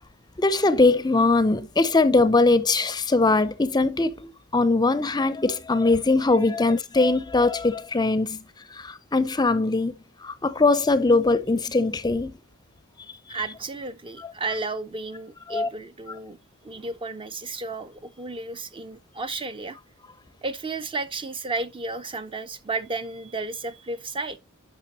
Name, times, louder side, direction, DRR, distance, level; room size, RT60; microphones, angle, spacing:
voice 1, 0.4-8.4 8.7-10.0 10.2-12.3 15.5-15.7, left 3 dB, 20° left, 0.6 m, -21 dB
voice 2, 13.3-16.4 16.6-19.8 20.4-24.4, right 3 dB, 25° right, 0.6 m, -33 dB
10.0 x 5.9 x 2.8 m
head